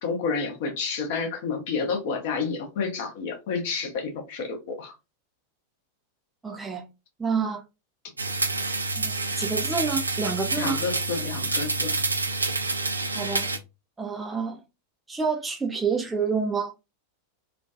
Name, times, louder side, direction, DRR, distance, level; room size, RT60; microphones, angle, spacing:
voice 1, 0.0-4.9 10.6-12.0, left 5 dB, 50° left, 0.7 m, -30 dB
voice 2, 6.4-6.8 7.2-7.6 9.0-10.8 13.1-13.5 14.0-14.6 15.1-16.7, right 5 dB, 10° right, 0.4 m, -28 dB
sound 1, 8.2-13.6, right 3 dB, 80° right, 0.3 m, -28 dB
2.4 x 2.2 x 2.4 m
figure-of-eight pair, 90°, 0 cm